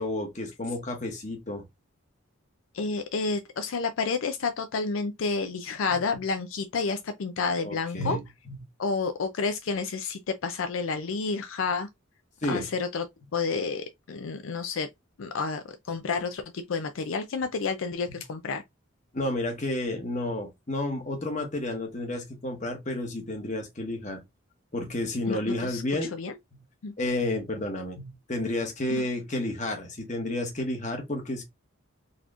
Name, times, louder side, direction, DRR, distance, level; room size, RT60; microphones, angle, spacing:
voice 1, 0.0-1.6 7.6-8.2 12.4-12.7 19.1-24.2 24.7-26.1 27.0-31.4, left 1 dB, 35° left, 1.1 m, -31 dB
voice 2, 2.7-8.2 8.8-11.9 12.5-13.1 13.3-14.9 15.2-18.6 25.3-25.8 26.1-26.4 26.8-26.9 28.9-29.1, left 4 dB, 75° left, 0.4 m, -30 dB
4.0 x 2.9 x 2.4 m
head